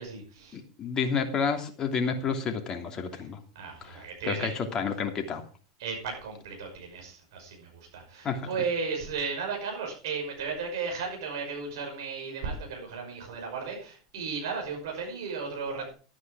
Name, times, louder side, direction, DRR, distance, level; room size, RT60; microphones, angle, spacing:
voice 1, 0.0-0.6 3.1-3.3 3.5-4.5 5.8-15.9, right 5 dB, 70° right, 1 dB, 5.8 m, -35 dB
voice 2, 0.5-3.4 3.8-5.4 8.2-8.5, left 5 dB, 30° left, 4 dB, 2.9 m, -30 dB
12.0 x 9.7 x 4.9 m, 0.39 s
hypercardioid pair, 95°, 2 cm